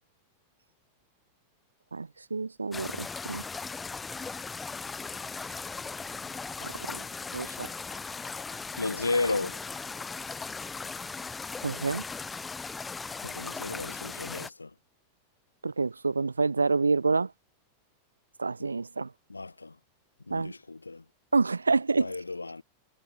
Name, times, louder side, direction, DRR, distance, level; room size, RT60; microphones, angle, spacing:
voice 1, 1.9-3.4 6.6-7.0 7.3-7.7 11.6-12.0 15.6-17.3 18.4-19.1 20.3-20.5 21.3-22.1, right 4 dB, 80° right, 1.1 m, -28 dB
sound 1, 2.7-14.5, left 4 dB, 15° left, 2.1 m, -38 dB
voice 2, 8.8-9.6 13.2-14.7 18.6-18.7 19.3-19.7 20.3-21.0 22.0-22.6, left 3 dB, 80° left, 3.1 m, -33 dB
figure-of-eight pair, 90°, 0 cm